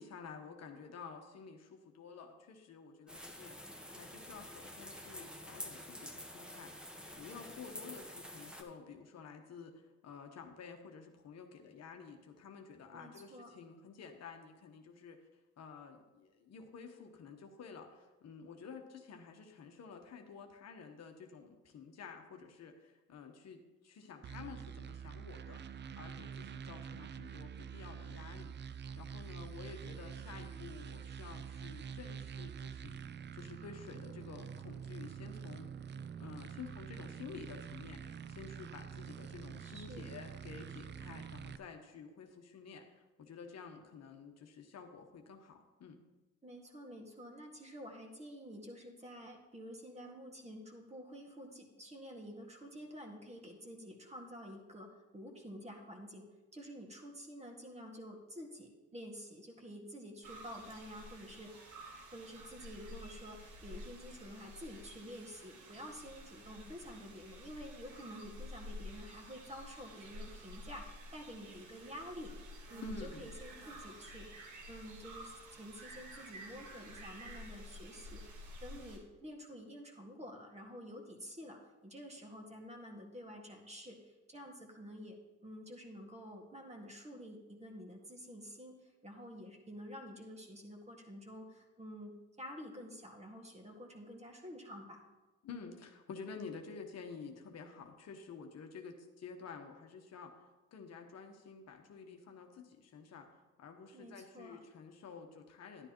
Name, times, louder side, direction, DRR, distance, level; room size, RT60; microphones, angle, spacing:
voice 1, 0.0-15.2 15.6-28.5 29.0-35.7 36.2-46.0 72.8-73.3 95.4-100.4 100.7-103.3 103.6-105.9, left 5 dB, 55° left, 4 dB, 1.1 m, -51 dB
sound 1, 3.1-8.6, equal, 5° right, 1.2 m, -48 dB
voice 2, 12.9-13.5 39.6-40.1 46.4-56.3 56.5-61.8 62.1-72.3 72.7-95.0 103.9-104.6, equal, 20° right, 1 dB, 1.9 m, -49 dB
sound 2, 24.2-41.6, right 7 dB, 35° right, 0.4 m, -46 dB
sound 3, 60.2-79.0, equal, 75° right, 1.7 m, -51 dB
11.0 x 10.0 x 3.0 m, 1.2 s
supercardioid pair, 70°, 31 cm